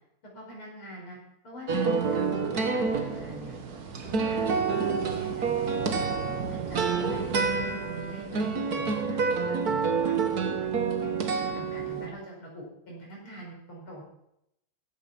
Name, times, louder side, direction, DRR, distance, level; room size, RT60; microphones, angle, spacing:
voice 1, 0.2-1.2 1.4-3.6 4.0-6.0 6.5-7.4 7.8-10.2 10.6-11.3 11.5-14.0, right 1 dB, 75° left, -3 dB, 6.3 m, -44 dB
sound 1, 1.7-12.1, right 5 dB, 50° right, 1.7 m, -28 dB
15.5 x 8.9 x 6.0 m, 0.80 s
omnidirectional pair, 2.3 m